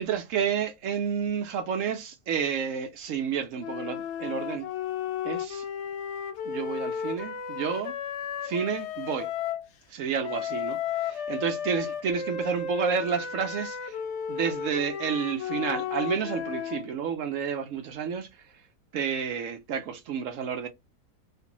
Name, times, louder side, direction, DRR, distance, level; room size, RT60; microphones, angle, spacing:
voice 1, 0.0-4.7 5.2-5.6 6.4-7.9 8.4-9.3 9.9-14.0 14.3-18.6 18.9-20.7, right 7 dB, 65° right, 0.8 m, -30 dB
sound 1, 3.6-9.7 10.2-16.9, left 7 dB, 75° left, 0.6 m, -34 dB
3.2 x 2.5 x 2.9 m
omnidirectional pair, 1.8 m